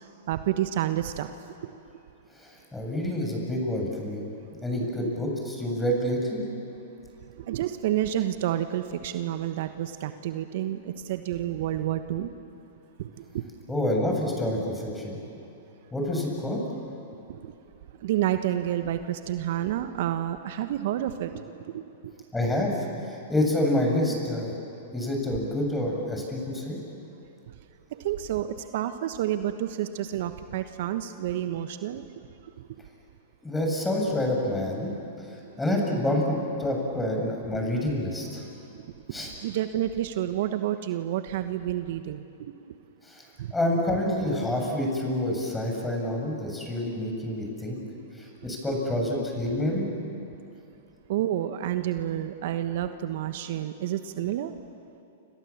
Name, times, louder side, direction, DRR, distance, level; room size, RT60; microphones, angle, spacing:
voice 1, 0.3-1.3 4.8-4.9 7.5-12.3 13.0-13.4 17.3-17.4 18.0-21.8 27.9-32.0 39.4-42.5 43.4-43.5 51.1-54.5, right 12 dB, 60° right, 9 dB, 1.2 m, -29 dB
voice 2, 2.4-4.3 4.6-6.4 13.7-15.2 15.9-16.6 22.3-24.6 24.9-26.8 33.4-34.9 35.3-38.4 39.1-39.3 43.0-43.3 43.5-47.8 48.2-49.9, left 1 dB, 10° left, 0 dB, 7.5 m, -28 dB
30.0 x 27.5 x 7.3 m, 2.8 s
hypercardioid pair, 110°, 0 cm